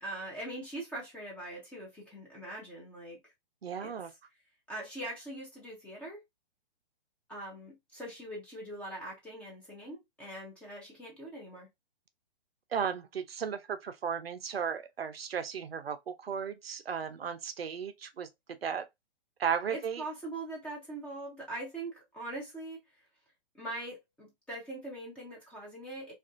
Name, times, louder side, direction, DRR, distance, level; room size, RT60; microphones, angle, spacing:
voice 1, 0.0-3.2 3.8-3.9 4.7-6.2 7.3-11.7 19.7-22.8 23.5-26.1, right 1 dB, 5° left, 0.4 m, -42 dB
voice 2, 3.6-4.1 12.7-18.3 18.6-18.9 19.4-20.0, right 7 dB, 85° right, 0.5 m, -35 dB
2.5 x 2.3 x 2.4 m
figure-of-eight pair, 125°, 30 cm